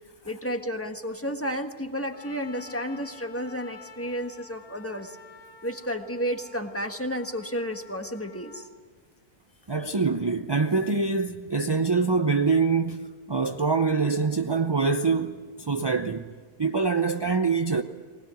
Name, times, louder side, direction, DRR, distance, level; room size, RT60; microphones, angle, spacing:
voice 1, 0.2-5.2 5.6-8.7, equal, 10° left, 1.4 m, -32 dB
Trumpet, 2.1-8.7, left 5 dB, 75° left, 2.2 m, -50 dB
voice 2, 9.7-16.3 16.6-17.8, right 4 dB, 30° right, 0.4 m, -25 dB
20.5 x 20.0 x 9.4 m
omnidirectional pair, 1.4 m